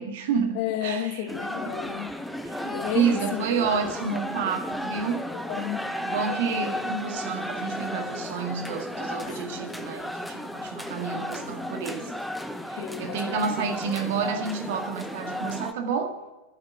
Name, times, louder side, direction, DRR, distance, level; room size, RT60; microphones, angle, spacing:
voice 1, 0.0-1.3 1.6-1.7 2.4-5.2 6.0-12.1 12.7-16.1, right 6 dB, 55° right, 5 dB, 1.9 m, -29 dB
voice 2, 0.5-2.1 2.6-3.5 3.8-3.9 5.3-5.9 9.3-9.4 12.8-13.4, left 11 dB, 45° left, 9 dB, 1.2 m, -32 dB
sound 1, 1.3-15.7, left 1 dB, ahead, 0.8 m, -34 dB
11.0 x 8.7 x 7.7 m, 1.1 s
figure-of-eight pair, 90°, 0 cm